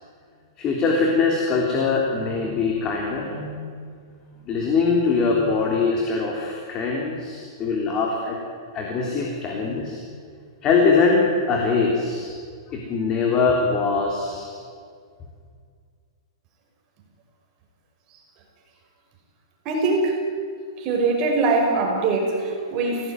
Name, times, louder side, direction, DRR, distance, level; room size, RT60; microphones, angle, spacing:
voice 1, 0.6-3.6 4.3-8.4 8.7-10.0 10.6-12.3 12.7-14.6, left 4 dB, 25° left, 0 dB, 3.4 m, -22 dB
voice 2, 19.7-20.2 20.8-23.1, right 3 dB, 30° right, 1 dB, 5.4 m, -22 dB
26.5 x 17.5 x 9.7 m, 2.1 s
supercardioid pair, 165°, 3 cm